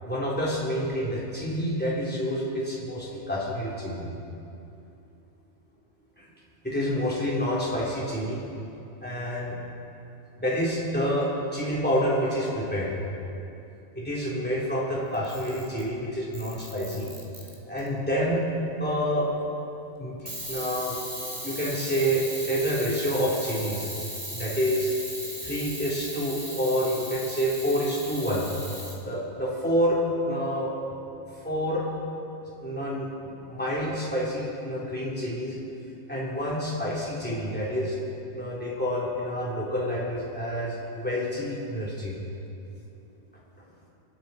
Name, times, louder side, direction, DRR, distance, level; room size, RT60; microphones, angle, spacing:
voice 1, 0.0-4.1 6.2-6.3 6.6-8.4 9.0-9.6 10.4-12.9 13.9-17.1 17.7-18.4 18.8-19.3 20.0-21.0 21.4-23.9 24.3-24.9 25.4-28.5 29.0-30.0 30.3-30.7 31.4-31.8 32.6-33.1 33.4-35.6 36.1-38.0 38.3-42.2, equal, 10° left, -6 dB, 3.3 m, -28 dB
Camera, 15.1-15.9 16.3-17.9 20.3-29.0, right 1 dB, 15° right, 2.2 m, -37 dB
28.0 x 9.5 x 4.2 m, 2.8 s
omnidirectional pair, 1.3 m